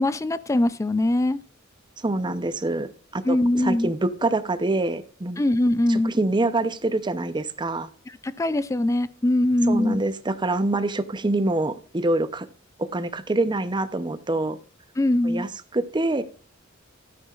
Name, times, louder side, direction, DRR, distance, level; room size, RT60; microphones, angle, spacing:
voice 1, 0.0-1.4 3.2-3.9 5.4-6.1 8.2-10.0 15.0-15.5, left 1 dB, 15° left, 15 dB, 0.3 m, -22 dB
voice 2, 2.0-5.4 5.9-7.9 9.7-12.5 12.8-14.6 15.2-16.2, right 2 dB, 25° right, 12 dB, 0.6 m, -25 dB
12.5 x 9.4 x 2.4 m, 0.40 s
head